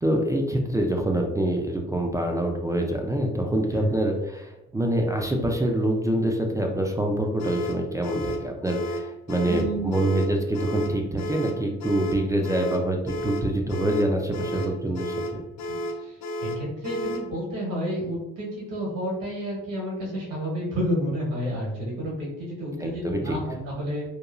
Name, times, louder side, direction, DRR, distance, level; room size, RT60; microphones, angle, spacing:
voice 1, 0.0-15.4 22.8-23.4, right 1 dB, 10° right, 2 dB, 0.3 m, -26 dB
sound 1, 7.4-17.3, equal, 60° left, 0.5 m, -32 dB
voice 2, 9.4-9.9 14.5-14.6 15.6-15.8 16.0-24.0, equal, 85° right, -5 dB, 1.5 m, -30 dB
3.0 x 2.2 x 2.4 m, 0.92 s
cardioid pair, 90°, 30 cm